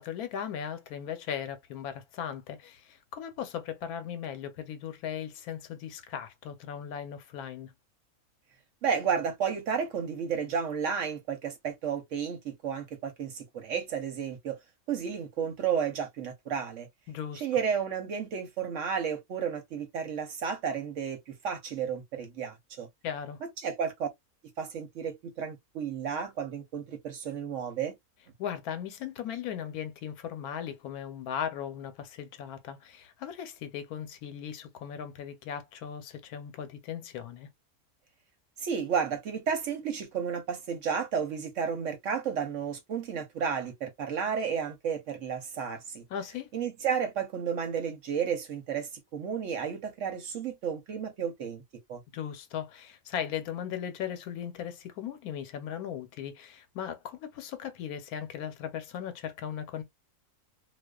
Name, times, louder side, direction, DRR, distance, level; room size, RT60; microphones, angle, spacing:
voice 1, 0.0-7.7 17.1-17.5 23.0-23.4 28.4-37.5 46.1-46.5 52.1-59.8, left 8 dB, 80° left, 1.1 m, -38 dB
voice 2, 8.8-14.6 14.9-16.9 17.3-22.9 23.4-24.1 24.6-27.9 38.6-46.0 46.5-51.6 51.9-52.0, right 7 dB, 65° right, 0.9 m, -32 dB
2.4 x 2.3 x 2.2 m
omnidirectional pair, 1.6 m